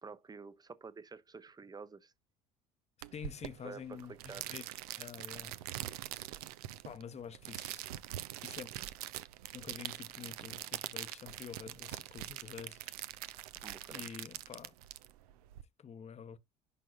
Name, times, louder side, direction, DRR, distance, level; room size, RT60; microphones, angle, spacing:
voice 1, 0.0-2.1 3.6-4.5 13.6-14.0, right 5 dB, 20° right, 0.8 m, -49 dB
sound 1, 3.0-15.6, right 14 dB, 75° right, 0.5 m, -44 dB
voice 2, 3.1-4.7 5.0-5.6 6.8-7.9 8.4-8.7 9.5-13.3 13.9-14.7 15.8-16.4, left 7 dB, 35° left, 0.9 m, -48 dB
11.0 x 3.7 x 2.4 m
hypercardioid pair, 65°, 20 cm